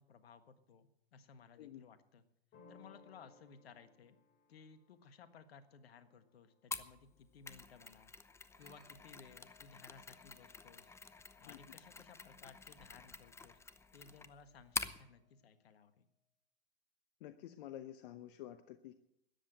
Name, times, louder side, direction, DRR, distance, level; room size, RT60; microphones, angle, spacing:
voice 1, 0.0-2.2 2.7-4.2 4.5-8.1 8.6-10.9 11.4-13.6 13.9-16.1, left 6 dB, 75° left, 11 dB, 1.6 m, -59 dB
sound 1, 2.5-8.1, left 3 dB, 35° left, 3.3 m, -66 dB
Mechanisms, 6.7-15.0, left 4 dB, 10° left, 0.7 m, -47 dB
sound 2, 8.5-16.0, left 8 dB, 15° right, 7.6 m, -72 dB
voice 2, 17.2-18.9, left 12 dB, 60° left, 10 dB, 0.9 m, -50 dB
13.5 x 9.9 x 7.9 m, 0.80 s
hypercardioid pair, 105°, 31 cm